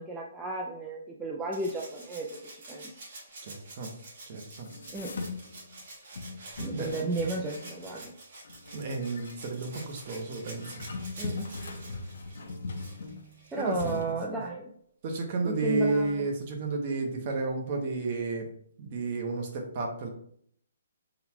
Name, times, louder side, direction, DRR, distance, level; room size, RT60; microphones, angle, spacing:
voice 1, 0.0-2.9 4.9-5.3 6.6-8.1 11.2-11.5 13.5-14.7 15.4-16.3, right 2 dB, 5° right, -3 dB, 0.3 m, -34 dB
Rattle (instrument), 1.5-13.8 15.2-15.3, right 2 dB, 50° right, 1.7 m, -48 dB
voice 2, 3.4-4.0 4.3-4.7 6.7-7.2 8.7-10.8 13.6-14.1 15.0-18.5 18.8-20.1, right 3 dB, 35° right, 2 dB, 0.8 m, -32 dB
sound 1, 4.6-5.8 6.2-8.1 8.4-9.4 10.5-13.4 13.7-14.1, left 3 dB, 75° left, 0.6 m, -40 dB
3.9 x 2.2 x 4.3 m, 0.64 s
hypercardioid pair, 170°, 0 cm